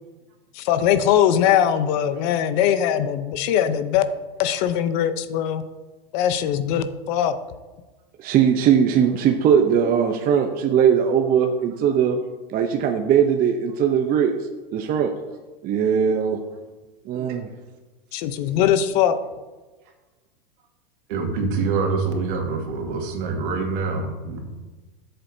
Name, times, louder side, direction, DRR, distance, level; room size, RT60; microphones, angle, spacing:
voice 1, 0.5-4.0 4.4-5.6 6.1-7.4 18.1-19.2, left 10 dB, 50° left, 12 dB, 0.8 m, -21 dB
voice 2, 8.2-12.2 12.5-14.3 14.7-15.1 15.6-16.4 17.1-17.5, right 8 dB, 30° right, 3 dB, 0.7 m, -19 dB
voice 3, 21.1-24.4, right 4 dB, 65° right, 1 dB, 2.2 m, -25 dB
13.0 x 7.7 x 2.7 m, 1.2 s
hypercardioid pair, 115°, 29 cm